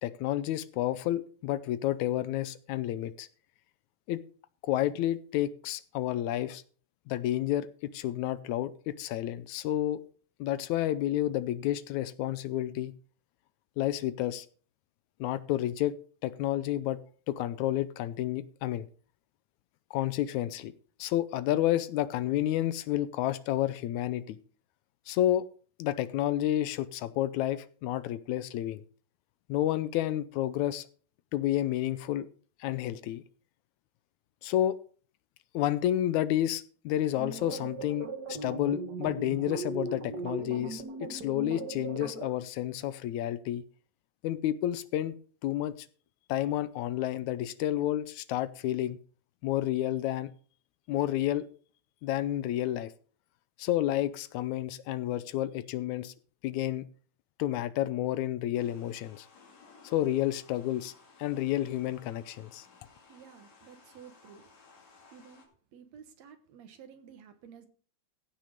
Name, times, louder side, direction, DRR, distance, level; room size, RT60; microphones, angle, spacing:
voice 1, 0.0-3.3 4.1-4.2 4.6-6.6 7.1-10.0 10.4-12.9 13.8-14.5 15.2-16.0 16.2-17.0 17.3-18.9 19.9-20.7 21.0-24.4 25.1-25.5 25.8-28.8 29.5-30.9 31.3-32.3 32.6-33.2 34.4-34.8 35.5-43.6 44.2-45.2 45.4-45.8 46.3-49.0 49.4-50.3 50.9-51.5 52.0-52.9 53.6-56.1 56.4-56.9 57.4-59.3 59.8-60.9 61.2-62.7, left 13 dB, 80° left, 2.0 m, -30 dB
sound 1, 37.1-42.3, right 3 dB, 40° right, 1.9 m, -38 dB
sound 2, 58.5-65.5, left 4 dB, 65° left, 3.5 m, -58 dB
voice 2, 63.1-64.4 65.1-65.4 65.7-67.7, right 7 dB, 65° right, 2.4 m, -52 dB
15.5 x 6.1 x 5.1 m
omnidirectional pair, 3.4 m